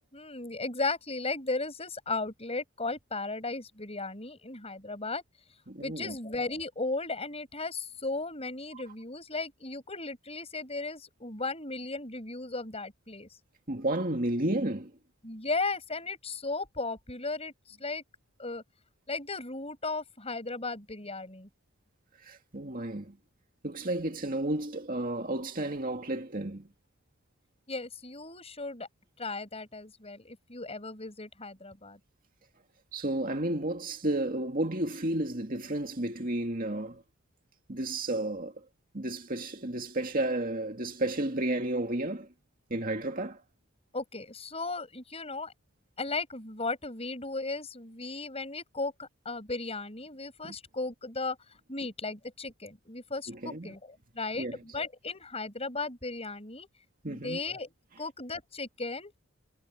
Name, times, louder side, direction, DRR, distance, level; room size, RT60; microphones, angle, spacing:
voice 1, 0.1-5.2 5.8-13.3 15.2-18.0 18.4-18.6 19.1-21.5 27.7-28.9 29.2-32.0 43.9-45.5 46.0-51.4 51.7-56.7 57.1-59.2, left 3 dB, 30° left, 7.5 m, -36 dB
voice 2, 5.7-6.1 13.7-14.9 22.2-23.2 23.6-26.7 32.9-37.0 37.7-38.6 38.9-42.3 42.7-43.4 50.4-50.5 53.3-53.7 54.4-54.6 57.0-57.4, right 1 dB, 40° right, 2.3 m, -32 dB
head